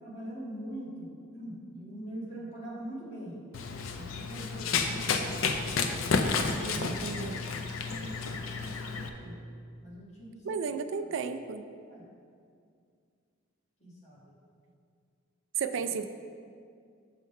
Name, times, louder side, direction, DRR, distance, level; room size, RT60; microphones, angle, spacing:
voice 1, 0.0-3.4 3.9-5.5 5.8-9.4 9.8-11.1 11.9-12.0 13.8-14.3 15.7-15.8, right 1 dB, 35° left, -6 dB, 1.6 m, -44 dB
Run, 3.5-9.1, left 4 dB, 80° left, 0.5 m, -31 dB
voice 2, 6.6-7.4 10.5-11.7 15.6-16.1, right 5 dB, 65° right, 10 dB, 0.3 m, -34 dB
6.3 x 3.8 x 5.4 m, 2.3 s
head